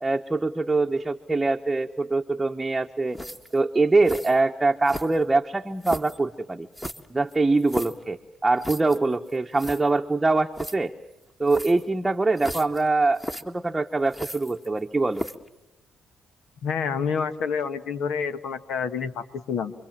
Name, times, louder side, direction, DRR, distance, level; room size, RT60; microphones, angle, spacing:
voice 1, 0.0-3.2 3.5-6.7 7.1-10.9 11.4-15.2, right 3 dB, 15° right, 3 dB, 1.0 m, -23 dB
sound 1, 3.1-3.6 4.0-4.4 4.8-5.3 5.8-6.2 6.7-8.0 8.6-9.0 9.3-9.4 9.6-9.8 10.5-10.8 11.5-11.9 12.4-12.8 13.2-13.4 14.1-14.8 15.1-15.5, equal, 10° left, 1.6 m, -35 dB
voice 2, 16.6-19.7, left 6 dB, 80° left, 11 dB, 1.4 m, -28 dB
28.5 x 23.0 x 7.4 m, 0.96 s
cardioid pair, 90°, 0 cm